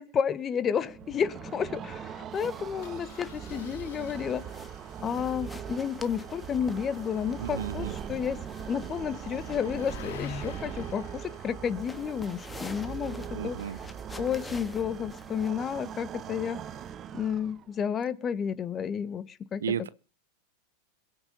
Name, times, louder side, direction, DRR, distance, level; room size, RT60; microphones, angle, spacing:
voice 1, 0.1-4.7 5.0-13.6 14.1-16.6 17.1-19.6, left 7 dB, 30° left, 1.4 m, -31 dB
sound 1, 0.8-17.8, right 9 dB, 35° right, 0.9 m, -41 dB
Engine starting, 0.9-1.1 1.4-1.5 1.7-1.9 2.8-13.9, left 7 dB, 70° left, 2.3 m, -49 dB
sound 2, 2.3-16.9, left 3 dB, 10° left, 1.6 m, -50 dB
voice 2, 7.4-7.9 13.3-13.8 19.6-19.9, right 8 dB, 85° right, 0.8 m, -33 dB
22.0 x 8.1 x 5.4 m
hypercardioid pair, 100°, 0 cm